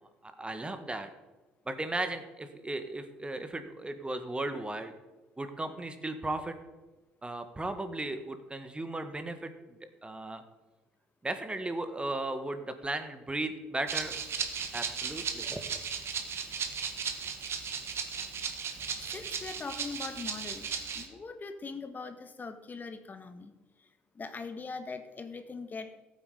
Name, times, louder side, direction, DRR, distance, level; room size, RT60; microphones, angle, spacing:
voice 1, 0.2-1.1 1.6-4.9 5.4-6.6 7.2-10.4 11.2-14.1 14.7-15.6, right 2 dB, 20° right, 9 dB, 1.6 m, -36 dB
Rattle (instrument), 13.9-21.1, right 6 dB, 50° right, 1.7 m, -36 dB
voice 2, 19.1-23.5 23.8-23.9 24.1-26.0, left 4 dB, 35° left, 9 dB, 1.3 m, -41 dB
14.5 x 8.6 x 5.0 m, 1.2 s
hypercardioid pair, 60°, 5 cm